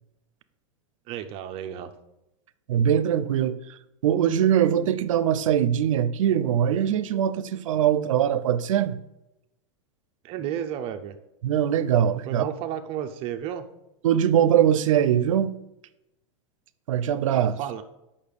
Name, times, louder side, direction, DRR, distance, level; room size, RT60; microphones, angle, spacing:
voice 1, 1.1-1.9 10.2-11.1 12.3-13.6 17.3-17.8, right 10 dB, 35° right, 7 dB, 0.5 m, -32 dB
voice 2, 2.7-9.0 11.4-12.5 14.0-15.6 16.9-17.5, right 9 dB, 85° right, 13 dB, 0.5 m, -22 dB
6.6 x 5.5 x 5.1 m, 0.90 s
supercardioid pair, 145°, 16 cm